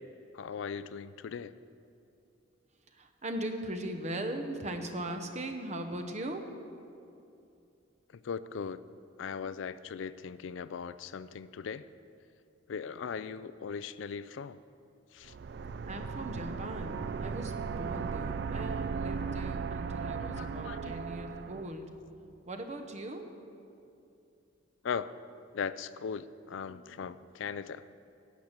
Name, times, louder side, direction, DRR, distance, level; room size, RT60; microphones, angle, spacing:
voice 1, 0.3-1.5 8.1-8.8 9.2-11.9 12.7-14.6 15.1-15.3 20.2-21.0 24.8-25.1 25.5-27.9, left 6 dB, 70° left, 15 dB, 0.4 m, -39 dB
voice 2, 2.9-6.5 15.8-21.9 22.5-23.3, right 1 dB, 35° right, 6 dB, 0.8 m, -39 dB
sound 1, 15.2-21.7, right 5 dB, 55° right, 0.4 m, -36 dB
10.5 x 8.7 x 6.5 m, 2.7 s
head